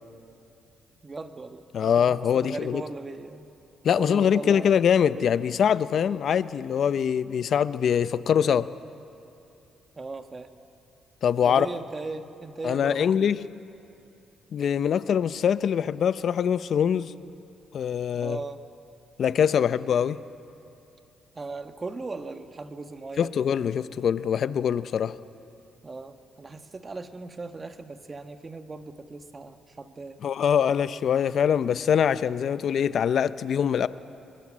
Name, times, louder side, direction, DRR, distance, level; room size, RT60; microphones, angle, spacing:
voice 1, 1.0-3.5 4.0-4.7 5.9-6.1 10.0-10.5 11.4-13.3 18.2-18.6 21.3-23.3 25.8-30.2, right 3 dB, 30° right, 8 dB, 1.4 m, -38 dB
voice 2, 1.7-2.8 3.8-8.7 11.2-11.7 12.6-13.4 14.5-17.1 17.7-18.4 19.2-20.2 23.2-25.2 30.2-33.9, left 8 dB, 60° left, 14 dB, 0.7 m, -23 dB
23.0 x 22.5 x 7.5 m, 2.7 s
cardioid pair, 90°, 0 cm